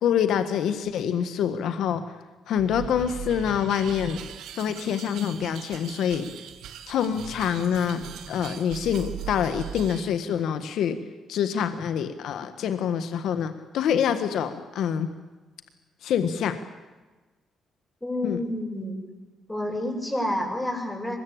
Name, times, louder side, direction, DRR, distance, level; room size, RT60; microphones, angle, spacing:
voice 1, 0.0-2.0 2.5-4.2 4.5-6.3 6.9-8.0 8.3-11.0 11.3-15.1 16.0-16.6 18.2-18.4, left 8 dB, 75° left, 10 dB, 1.6 m, -26 dB
sound 1, 2.6-10.1, right 8 dB, 80° right, 2.1 m, -39 dB
voice 2, 18.0-19.0 19.5-21.2, left 1 dB, 10° left, 2 dB, 7.5 m, -29 dB
23.5 x 21.0 x 8.8 m, 1.2 s
cardioid pair, 90°, 0 cm